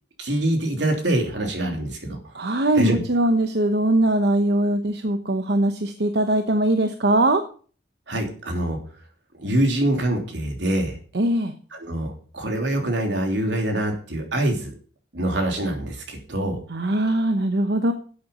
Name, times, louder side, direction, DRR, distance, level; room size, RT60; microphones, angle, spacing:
voice 1, 0.2-2.2 2.8-3.0 8.1-8.8 9.3-10.9 11.7-14.7 15.1-16.6, right 1 dB, 85° right, 3 dB, 3.3 m, -24 dB
voice 2, 2.3-7.4 11.1-11.5 16.7-17.9, right 1 dB, 65° right, 7 dB, 0.9 m, -21 dB
12.0 x 8.6 x 5.4 m, 0.42 s
head